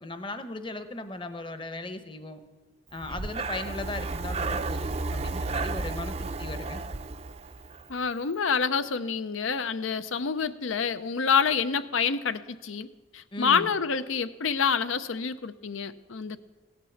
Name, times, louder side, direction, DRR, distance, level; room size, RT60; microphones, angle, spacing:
voice 1, 0.0-2.4 2.9-6.8 13.3-13.7, left 2 dB, 25° left, 10 dB, 0.8 m, -37 dB
Breathing, 3.0-7.9, right 3 dB, 30° right, 0.5 m, -32 dB
voice 2, 7.9-12.9 13.1-16.4, left 6 dB, 85° left, 13 dB, 0.7 m, -27 dB
16.5 x 9.7 x 7.1 m, 1.3 s
head